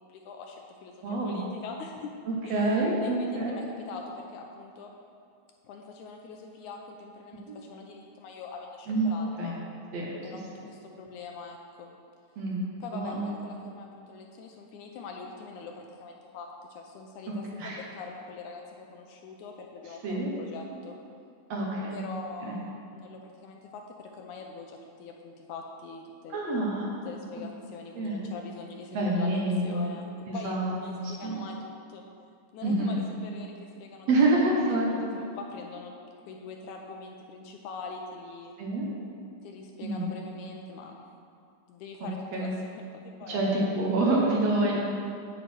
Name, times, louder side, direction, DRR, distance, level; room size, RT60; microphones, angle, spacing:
voice 1, 0.0-2.1 2.4-2.6 3.0-4.9 5.6-9.6 10.2-12.0 12.8-21.0 21.9-26.6 27.1-29.4 29.6-30.1 30.3-32.1 32.5-34.1 34.9-35.9 36.3-38.5 39.4-40.9 41.7-43.6, left 4 dB, 80° left, 2 dB, 1.9 m, -43 dB
voice 2, 1.0-1.4 2.5-3.6 7.5-7.6 8.9-9.5 9.9-10.1 12.4-13.3 17.6-17.8 20.0-20.3 21.5-22.0 22.4-22.6 26.3-26.9 28.0-28.2 28.9-29.9 30.3-31.4 32.6-33.0 34.1-34.9 38.6-38.9 39.8-40.1 42.3-42.5 43.3-44.8, right 2 dB, 60° right, -3 dB, 2.1 m, -27 dB
9.2 x 8.6 x 4.6 m, 2.4 s
omnidirectional pair, 3.8 m